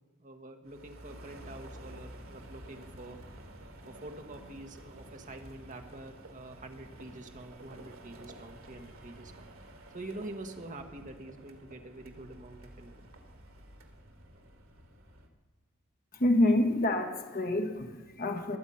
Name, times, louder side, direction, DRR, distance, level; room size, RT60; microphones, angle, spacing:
voice 1, 0.2-3.2 3.9-9.5 9.9-13.1, right 2 dB, 40° right, 4 dB, 1.4 m, -46 dB
sound 1, 0.7-15.3, right 1 dB, 85° right, 1.8 m, -51 dB
voice 2, 16.1-18.6, left 1 dB, 45° left, 4 dB, 1.4 m, -27 dB
22.5 x 8.1 x 5.7 m, 1.3 s
head